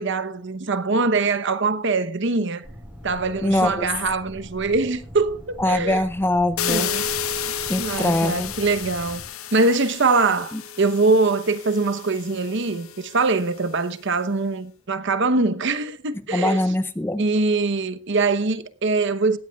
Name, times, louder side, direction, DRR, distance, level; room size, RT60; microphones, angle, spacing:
voice 1, 0.0-2.6 3.0-6.0 6.7-7.0 7.8-9.2 9.5-16.6 17.2-19.4, right 3 dB, 55° right, 0.9 m, -23 dB
sound 1, 2.6-9.3, equal, 5° right, 3.9 m, -42 dB
voice 2, 3.4-3.9 5.6-6.9 7.7-8.5 10.5-10.6 16.3-17.2, left 1 dB, 10° left, 0.5 m, -22 dB
sound 2, 6.6-13.4, left 7 dB, 85° left, 1.2 m, -31 dB
17.5 x 14.0 x 2.3 m
head